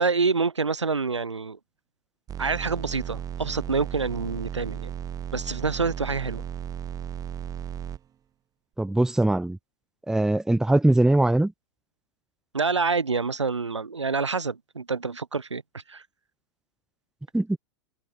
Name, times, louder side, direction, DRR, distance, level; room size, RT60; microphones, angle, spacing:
voice 1, 0.0-1.6 2.4-4.9 5.3-6.4 12.5-15.6 15.9-16.0, right 4 dB, 80° right, 3.4 m, -27 dB
sound 1, 2.3-8.0, right 9 dB, 25° right, 4.2 m, -35 dB
voice 2, 8.8-9.6 10.1-11.5 17.3-17.6, right 1 dB, 5° right, 1.3 m, -21 dB
open air
figure-of-eight pair, 95°, 15 cm